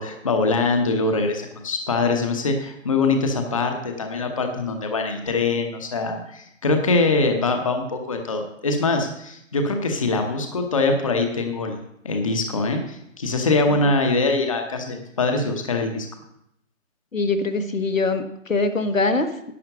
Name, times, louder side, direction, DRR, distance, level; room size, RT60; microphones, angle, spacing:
voice 1, 0.0-11.8 12.0-16.1, left 3 dB, 25° left, 4 dB, 0.9 m, -23 dB
voice 2, 17.1-19.5, left 3 dB, 85° left, 8 dB, 1.4 m, -23 dB
11.0 x 5.9 x 6.7 m, 0.75 s
figure-of-eight pair, 155°, 39 cm